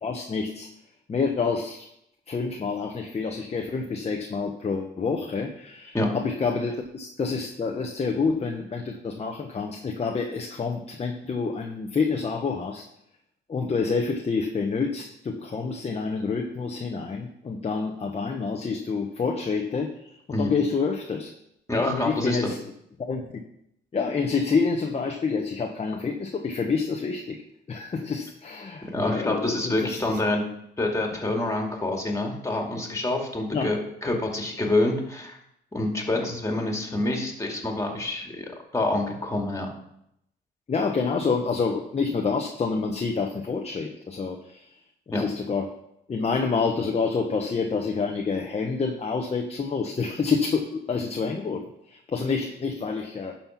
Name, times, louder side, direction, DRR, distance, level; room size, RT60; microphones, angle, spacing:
voice 1, 0.0-0.7 1.1-1.9 2.3-12.9 13.5-21.3 21.7-22.6 23.1-23.3 23.9-27.4 27.7-30.2 33.5-33.7 40.7-44.7 45.1-45.7 46.1-53.3, left 4 dB, 30° left, 2 dB, 1.0 m, -28 dB
voice 2, 21.7-22.5 28.9-30.4 30.8-35.4 35.7-38.5 38.7-39.7 45.1-45.2, left 2 dB, 15° left, 1 dB, 2.4 m, -27 dB
11.0 x 4.4 x 5.9 m, 0.77 s
cardioid pair, 90°, 20 cm